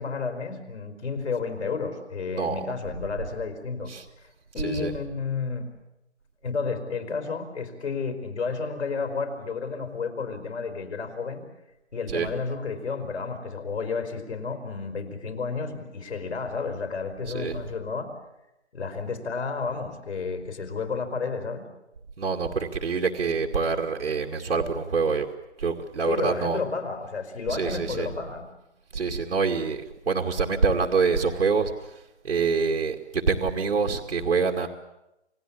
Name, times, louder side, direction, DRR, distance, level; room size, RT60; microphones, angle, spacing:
voice 1, 0.0-3.9 4.2-5.7 6.4-11.4 11.9-18.1 18.7-21.6 26.1-28.5, left 4 dB, 70° left, 6 dB, 4.8 m, -31 dB
voice 2, 22.2-25.3 25.6-26.6 27.5-28.1 28.9-31.7 32.2-34.7, right 5 dB, 80° right, 2 dB, 2.3 m, -25 dB
28.5 x 18.0 x 8.5 m, 0.91 s
hypercardioid pair, 165°, 34 cm